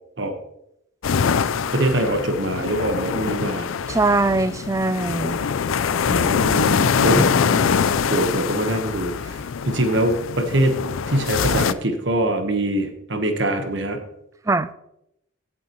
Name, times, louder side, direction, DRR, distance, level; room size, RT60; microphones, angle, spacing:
sound 1, 1.0-11.7, left 6 dB, 85° left, 0.4 m, -23 dB
voice 1, 1.7-3.7 6.1-7.3 8.1-9.4 9.7-10.8 11.1-14.0, right 1 dB, 60° right, 6 dB, 1.3 m, -23 dB
voice 2, 3.9-5.4 7.1-7.8 14.5-14.7, right 2 dB, 15° right, 14 dB, 0.3 m, -22 dB
16.5 x 7.5 x 3.1 m, 0.80 s
head